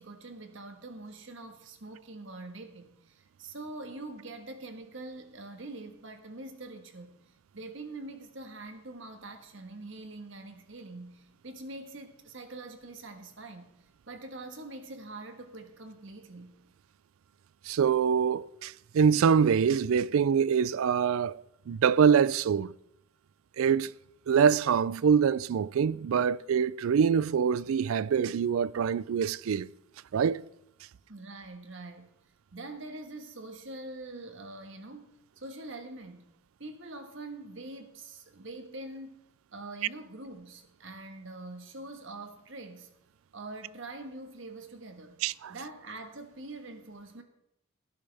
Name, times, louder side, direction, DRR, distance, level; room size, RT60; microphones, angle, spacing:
voice 1, 0.0-7.1 7.5-13.7 14.1-16.5 31.1-32.1 32.5-35.1 35.4-36.3 36.6-39.2 39.5-42.9 43.3-45.2 45.5-47.2, right 2 dB, 65° right, 1.4 m, -44 dB
voice 2, 17.7-21.4 21.7-22.7 23.6-23.9 24.3-29.7 30.1-30.4 45.2-45.5, right 7 dB, 85° right, 0.4 m, -25 dB
17.0 x 10.5 x 3.4 m
head